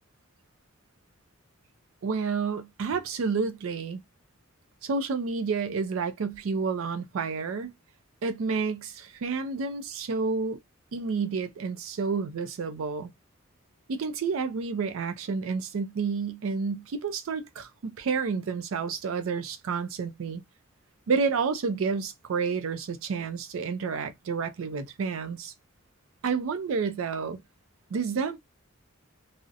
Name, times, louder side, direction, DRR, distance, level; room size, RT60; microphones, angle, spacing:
voice 1, 2.0-4.0 4.8-7.7 8.2-10.6 10.9-13.1 13.9-20.4 21.1-25.5 26.2-27.4 27.9-28.4, right 5 dB, 70° right, 0.4 m, -30 dB
2.6 x 2.0 x 2.4 m
head